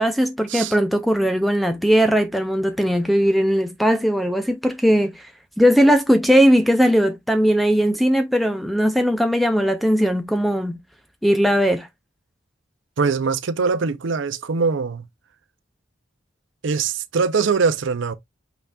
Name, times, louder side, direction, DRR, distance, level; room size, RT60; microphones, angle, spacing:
voice 1, 0.0-5.3 5.6-10.8 11.2-11.9, equal, ahead, 0.4 m, -18 dB
voice 2, 13.0-15.1 16.6-18.2, right 5 dB, 70° right, 0.5 m, -22 dB
5.6 x 3.9 x 2.3 m
head